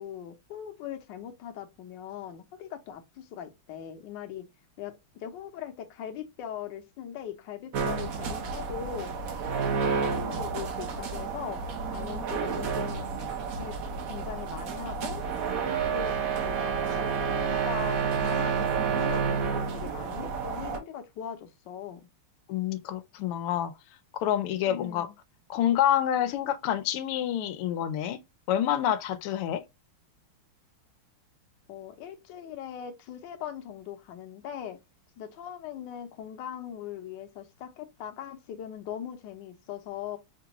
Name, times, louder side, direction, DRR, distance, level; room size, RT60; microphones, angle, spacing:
voice 1, 0.0-4.5 4.8-9.2 9.6-13.1 13.6-13.8 14.1-15.2 15.6-16.2 16.4-22.1 24.6-25.1 31.7-34.8 35.2-40.2, left 9 dB, 65° left, 1.3 m, -40 dB
sound 1, 7.7-20.8, right 6 dB, 70° right, 0.8 m, -30 dB
voice 2, 22.5-23.7 24.1-25.1 25.5-28.2 28.5-29.6, left 11 dB, 85° left, 1.5 m, -27 dB
5.1 x 2.3 x 2.9 m
omnidirectional pair, 2.4 m